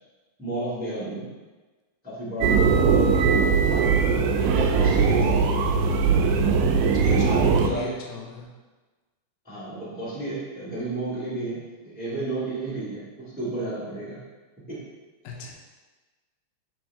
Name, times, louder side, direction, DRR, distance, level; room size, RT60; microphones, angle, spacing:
voice 1, 0.4-1.3 2.0-3.6 4.3-5.6 7.0-8.0 9.4-14.2 14.7-14.8, right 2 dB, 5° right, -10 dB, 1.0 m, -32 dB
sound 1, 2.4-7.7, right 5 dB, 80° right, 2.0 m, -20 dB
voice 2, 6.8-8.5 15.2-15.5, left 4 dB, 70° left, -1 dB, 2.0 m, -38 dB
6.5 x 4.4 x 3.5 m, 1.3 s
omnidirectional pair, 3.5 m